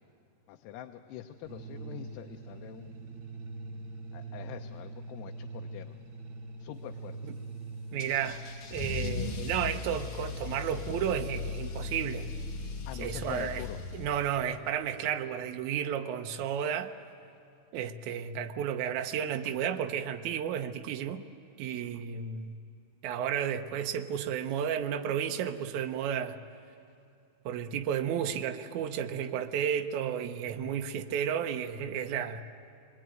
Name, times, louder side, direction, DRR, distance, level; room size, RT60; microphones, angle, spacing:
voice 1, 0.5-3.0 4.1-6.0 6.6-7.2 12.9-13.8, left 11 dB, 85° left, 5 dB, 2.9 m, -44 dB
sound 1, 1.4-13.2, right 2 dB, 40° right, 2.2 m, -44 dB
voice 2, 7.9-8.4 8.7-12.3 13.0-13.6 13.9-16.9 17.7-21.2 21.6-22.5 23.0-26.4 27.5-32.4, right 9 dB, 85° right, 6 dB, 1.6 m, -32 dB
Car / Engine starting / Accelerating revving vroom, 8.0-14.5, left 5 dB, 65° left, 1.4 m, -38 dB
25.5 x 21.5 x 9.1 m, 2.6 s
omnidirectional pair, 4.7 m